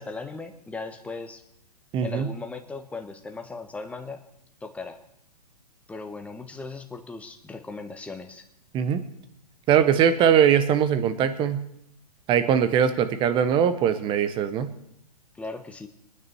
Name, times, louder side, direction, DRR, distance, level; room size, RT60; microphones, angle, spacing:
voice 1, 0.0-1.4 2.0-4.2 4.6-5.0 5.9-8.5 15.3-15.9, left 3 dB, 5° left, 6 dB, 1.3 m, -37 dB
voice 2, 1.9-2.3 8.7-9.0 9.7-11.6 12.3-14.7, right 8 dB, 25° right, 11 dB, 1.1 m, -21 dB
24.0 x 9.7 x 4.7 m, 0.80 s
figure-of-eight pair, 115°, 20 cm